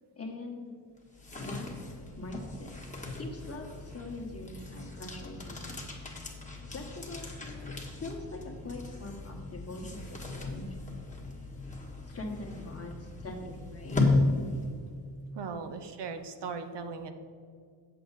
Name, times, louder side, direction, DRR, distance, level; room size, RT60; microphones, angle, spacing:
voice 1, 0.1-0.8 1.4-1.7 2.2-2.8 3.2-5.8 6.7-10.8 12.0-14.1 15.3-15.4, left 2 dB, 30° left, 1 dB, 1.6 m, -42 dB
sound 1, 1.0-15.0, left 2 dB, 15° left, 1.4 m, -35 dB
voice 2, 15.3-17.1, right 5 dB, 60° right, 7 dB, 0.8 m, -38 dB
7.8 x 6.8 x 4.1 m, 2.2 s
cardioid pair, 85°, 46 cm